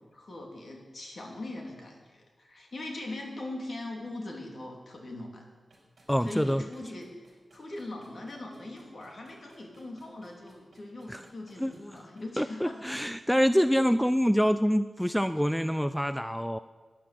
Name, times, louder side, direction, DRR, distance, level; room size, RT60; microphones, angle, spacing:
voice 1, 0.1-5.4 6.2-12.9, left 2 dB, 50° left, 1 dB, 2.9 m, -41 dB
sound 1, 5.7-14.2, right 2 dB, 45° right, 5.4 m, -62 dB
voice 2, 6.1-6.6 11.1-11.3 11.6-11.7 12.4-16.6, equal, ahead, 12 dB, 0.3 m, -26 dB
12.5 x 10.5 x 7.5 m, 1.4 s
wide cardioid pair, 140°, 0 cm